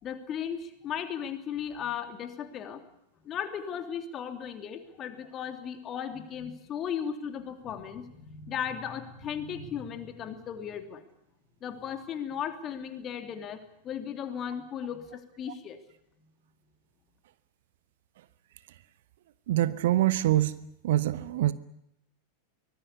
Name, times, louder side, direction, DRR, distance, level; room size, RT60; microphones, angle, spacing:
voice 1, 0.0-2.8 3.2-11.0 11.6-15.8, left 8 dB, 30° left, 7 dB, 3.1 m, -36 dB
voice 2, 19.5-20.6 20.8-21.5, right 14 dB, 55° right, 16 dB, 1.0 m, -24 dB
24.0 x 19.0 x 8.3 m, 0.80 s
figure-of-eight pair, 90°, 0 cm